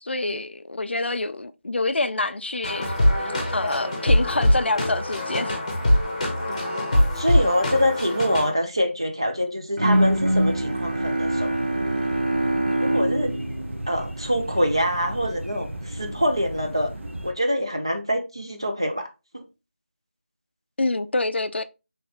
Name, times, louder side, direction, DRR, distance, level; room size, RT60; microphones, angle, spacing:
voice 1, 0.0-5.6 20.8-21.6, left 2 dB, 60° left, 0.4 m, -27 dB
sound 1, 2.6-8.5, left 1 dB, 25° left, 0.9 m, -23 dB
voice 2, 7.2-11.5 12.8-13.3 13.9-16.9 17.2-19.4, equal, 25° right, 0.3 m, -25 dB
Bowed string instrument, 9.8-14.8, right 1 dB, 40° right, 0.7 m, -24 dB
sound 2, 9.8-17.3, right 1 dB, 75° right, 1.1 m, -35 dB
5.2 x 3.2 x 2.8 m
figure-of-eight pair, 175°, 7 cm